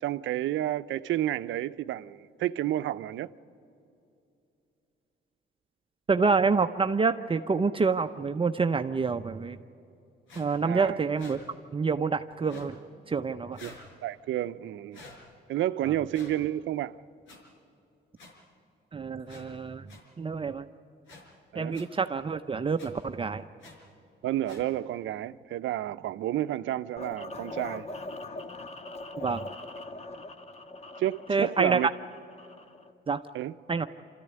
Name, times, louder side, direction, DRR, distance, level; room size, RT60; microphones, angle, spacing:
voice 1, 0.0-3.3 10.6-11.0 13.6-13.7 14.0-15.0 15.5-17.0 21.5-21.8 24.2-27.9 31.0-31.9 33.3-33.5, right 13 dB, 75° right, 0.6 m, -30 dB
voice 2, 6.1-9.6 10.4-11.4 11.7-12.8 13.1-13.6 18.9-19.9 20.2-20.6 21.5-23.4 29.2-29.5 31.3-31.8 33.1-33.2 33.7-33.9, right 4 dB, 25° right, 0.7 m, -27 dB
sound 1, 10.3-10.5 11.2-11.4 12.4-12.7 13.5-13.8 14.9-15.2 16.1-16.3 17.3-17.4 18.2-18.3 19.3-19.4 19.9-20.0 21.1-21.2 21.7-21.8 22.8-22.9 23.6-23.7 24.4-24.6, left 2 dB, 80° left, 4.5 m, -48 dB
sound 2, 27.0-32.9, left 2 dB, 35° left, 1.4 m, -42 dB
26.0 x 14.0 x 9.7 m
cardioid pair, 90°, 20 cm